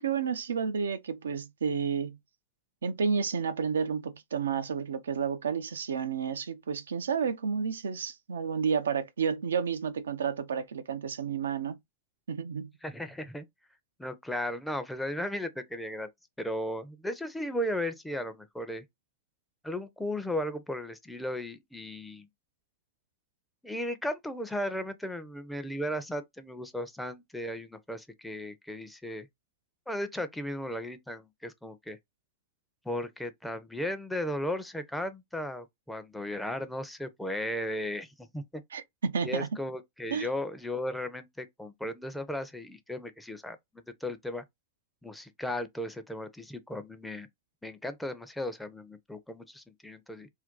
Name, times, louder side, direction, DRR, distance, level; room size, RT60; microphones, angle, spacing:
voice 1, 0.0-2.2 2.8-11.8 12.3-12.7 38.7-39.5 40.1-40.3, right 6 dB, 80° right, 0.4 m, -31 dB
voice 2, 12.8-13.5 14.0-16.1 16.4-18.8 19.6-22.3 23.6-29.3 29.9-32.0 32.8-38.6 39.2-44.4 45.0-47.3 47.6-50.3, left 1 dB, 5° left, 0.5 m, -36 dB
2.6 x 2.2 x 3.6 m
hypercardioid pair, 100°, 0 cm